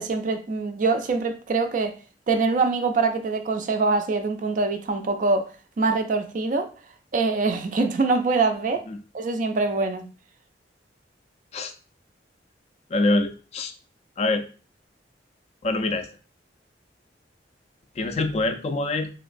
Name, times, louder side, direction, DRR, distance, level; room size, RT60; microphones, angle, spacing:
voice 1, 0.0-1.9 2.3-5.5 5.8-6.7 7.1-8.8 9.1-10.1, right 3 dB, 45° right, 7 dB, 0.4 m, -24 dB
voice 2, 12.9-13.7 14.2-14.5 15.6-16.1 18.0-19.1, left 2 dB, 35° left, 7 dB, 0.3 m, -24 dB
3.0 x 2.6 x 2.5 m, 0.36 s
head